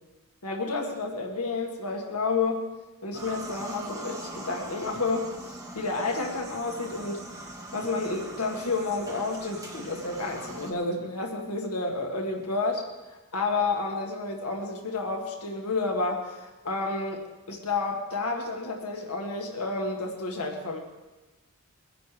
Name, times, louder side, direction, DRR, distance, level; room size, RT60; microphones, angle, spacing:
voice 1, 0.4-2.7 3.0-7.3 7.7-12.8 13.3-17.2 17.5-20.8, left 3 dB, 80° left, 1 dB, 1.9 m, -30 dB
sound 1, 3.1-10.7, right 2 dB, 15° right, 1.5 m, -41 dB
22.5 x 11.0 x 3.4 m, 1.1 s
head